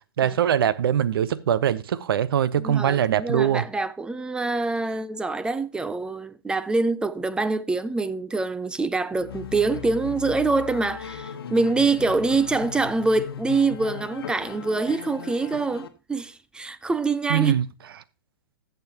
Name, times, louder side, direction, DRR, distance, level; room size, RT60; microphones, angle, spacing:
voice 1, 0.2-3.6 17.3-17.6, right 9 dB, 70° right, 0.7 m, -22 dB
voice 2, 2.6-17.5, right 3 dB, 5° right, 0.4 m, -25 dB
sound 1, 9.1-15.9, left 9 dB, 75° left, 1.1 m, -38 dB
14.5 x 6.9 x 2.9 m
hypercardioid pair, 130°, 13 cm